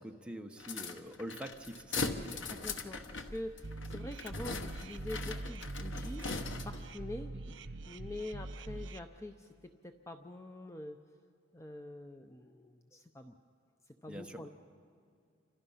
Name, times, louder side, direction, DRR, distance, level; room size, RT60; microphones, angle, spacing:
voice 1, 0.0-2.4 7.3-7.5 14.1-14.4, equal, 5° right, 3 dB, 1.1 m, -45 dB
sound 1, 0.6-6.9, left 3 dB, 85° left, 1.2 m, -40 dB
voice 2, 2.5-6.3 6.6-7.3 7.9-11.0 11.5-13.4 13.9-14.5, left 1 dB, 15° left, 6 dB, 0.7 m, -45 dB
sound 2, 3.6-9.0, right 2 dB, 90° right, 0.9 m, -43 dB
29.5 x 26.0 x 5.7 m, 2.4 s
head